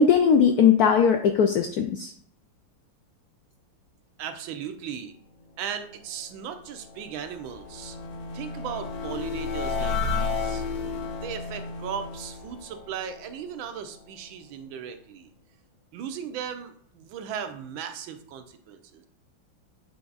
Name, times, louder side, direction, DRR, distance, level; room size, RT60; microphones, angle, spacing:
voice 1, 0.0-2.1, left 6 dB, 80° left, 6 dB, 0.8 m, -19 dB
voice 2, 4.2-5.2 5.6-8.0 8.3-10.6 11.2-15.3 15.9-19.1, right 8 dB, 85° right, 8 dB, 1.5 m, -37 dB
sound 1, 6.5-13.7, left 4 dB, 60° left, 1.1 m, -32 dB
7.2 x 3.3 x 3.9 m, 0.62 s
omnidirectional pair, 2.1 m